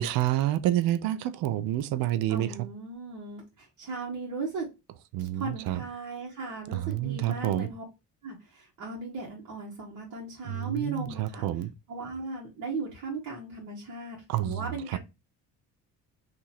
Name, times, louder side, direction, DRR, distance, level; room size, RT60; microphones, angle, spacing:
voice 1, 0.0-2.5 5.1-5.8 6.7-7.7 10.5-11.7 14.3-14.6 14.9-15.0, right 13 dB, 75° right, 0.6 m, -28 dB
voice 2, 2.3-4.7 5.2-7.8 8.2-11.4 11.9-15.0, right 3 dB, 55° right, 1.3 m, -37 dB
2.8 x 2.6 x 4.1 m
cardioid pair, 100°, 35 cm